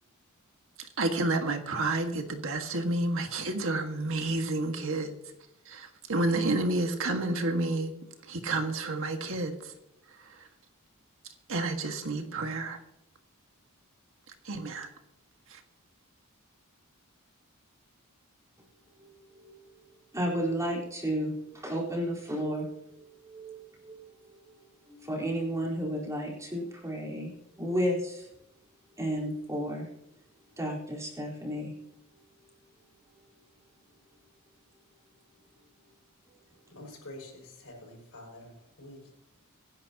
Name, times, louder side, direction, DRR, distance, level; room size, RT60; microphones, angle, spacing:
voice 1, 0.8-5.2 5.6-7.9 8.3-9.7 11.5-12.8 14.4-14.9 15.5-15.6, right 2 dB, 65° right, 1.7 m, -30 dB
voice 2, 20.1-22.7 23.2-24.0 24.9-27.3 27.6-28.3 29.0-29.9 30.6-31.7, equal, 15° right, 4.1 m, -32 dB
voice 3, 36.7-39.1, left 1 dB, 70° left, 6.2 m, -47 dB
24.5 x 10.5 x 2.9 m
head